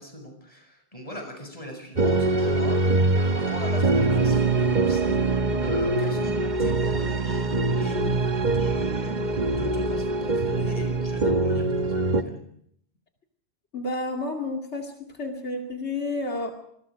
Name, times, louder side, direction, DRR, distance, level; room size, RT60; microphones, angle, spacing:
voice 1, 0.0-7.5 7.8-8.3 8.5-9.2 9.5-12.4, left 1 dB, 35° left, 3 dB, 7.0 m, -39 dB
sound 1, 2.0-12.2, right 3 dB, 45° right, 1.3 m, -23 dB
voice 2, 13.7-14.9 15.2-16.5, left 2 dB, 85° left, 2 dB, 2.6 m, -30 dB
26.5 x 21.5 x 5.1 m, 0.69 s
omnidirectional pair, 1.1 m